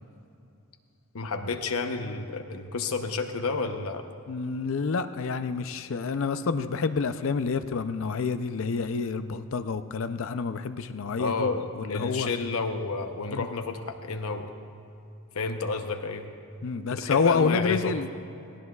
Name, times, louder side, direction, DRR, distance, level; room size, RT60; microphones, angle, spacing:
voice 1, 1.1-4.0 11.2-14.5 15.3-16.3 16.9-17.9, left 4 dB, 80° left, 6 dB, 0.8 m, -30 dB
voice 2, 4.3-12.3 13.3-13.5 16.6-18.1, left 5 dB, 60° left, 11 dB, 0.5 m, -28 dB
18.5 x 16.0 x 2.3 m, 2.7 s
head